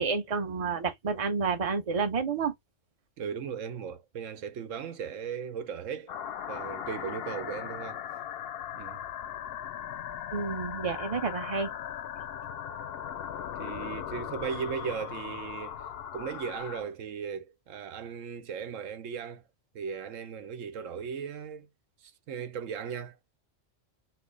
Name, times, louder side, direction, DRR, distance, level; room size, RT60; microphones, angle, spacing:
voice 1, 0.0-2.5 10.3-11.7, right 5 dB, 30° right, 0.8 m, -30 dB
voice 2, 3.2-6.1 6.5-8.0 8.7-9.0 13.5-15.8 16.1-19.4 19.7-21.7 22.0-23.2, right 7 dB, 80° right, 1.1 m, -37 dB
sound 1, 6.1-16.8, left 9 dB, 65° left, 0.7 m, -38 dB
4.6 x 2.1 x 4.6 m
omnidirectional pair, 1.3 m